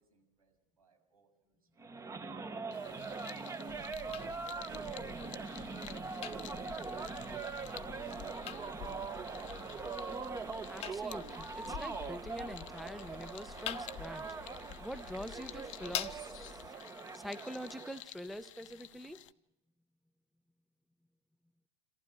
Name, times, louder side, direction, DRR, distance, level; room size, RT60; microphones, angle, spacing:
voice 1, 0.0-2.6 2.9-5.5 6.1-9.3, right 4 dB, 80° right, 4 dB, 6.9 m, -65 dB
sound 1, 1.8-18.0, right 4 dB, 15° right, 1.4 m, -42 dB
sound 2, 2.7-19.3, left 14 dB, 60° left, 0.9 m, -53 dB
sound 3, 3.7-16.7, left 11 dB, 35° left, 1.0 m, -47 dB
voice 2, 10.7-14.2 14.8-16.6 17.2-19.3, equal, ahead, 13 dB, 0.9 m, -45 dB
27.5 x 15.5 x 8.8 m, 0.91 s
figure-of-eight pair, 100°, 18 cm